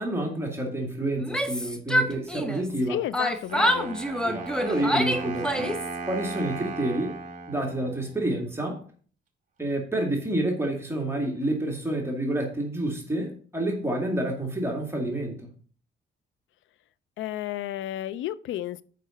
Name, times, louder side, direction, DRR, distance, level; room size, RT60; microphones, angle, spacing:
voice 1, 0.0-3.0 4.2-5.8 6.1-7.1 7.5-8.8 9.6-15.5, right 1 dB, 10° right, 2.1 m, -29 dB
Yell, 1.2-2.8 3.1-5.9, equal, 5° left, 1.1 m, -26 dB
voice 2, 2.9-4.0 17.2-18.8, left 13 dB, 75° left, 0.5 m, -32 dB
Wind instrument woodwind instrument, 3.5-8.5, right 4 dB, 40° right, 1.9 m, -37 dB
6.7 x 5.4 x 6.3 m
cardioid pair, 90°, 20 cm